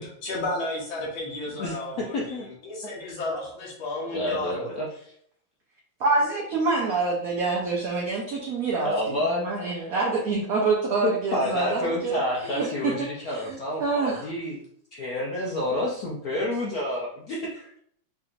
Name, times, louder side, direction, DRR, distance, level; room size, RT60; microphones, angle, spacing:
voice 1, 0.0-4.7, left 2 dB, 85° left, -4 dB, 1.8 m, -33 dB
voice 2, 2.1-2.5 3.0-3.1 4.1-4.9 8.8-9.4 11.0-14.6 14.9-17.8, left 1 dB, 65° left, -3 dB, 0.9 m, -29 dB
voice 3, 6.0-14.3, right 3 dB, 65° right, -3 dB, 0.9 m, -27 dB
4.8 x 2.8 x 2.5 m, 0.66 s
omnidirectional pair, 2.1 m